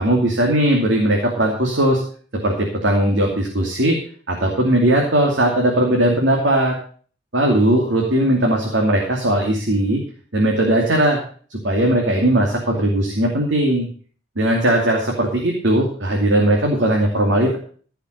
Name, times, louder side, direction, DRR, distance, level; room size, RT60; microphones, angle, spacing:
voice 1, 0.0-2.0 2.4-4.0 4.3-6.7 7.3-10.0 10.3-11.2 11.5-13.9 14.4-17.6, right 1 dB, 75° right, 0 dB, 2.7 m, -18 dB
16.0 x 6.0 x 6.5 m, 0.44 s
head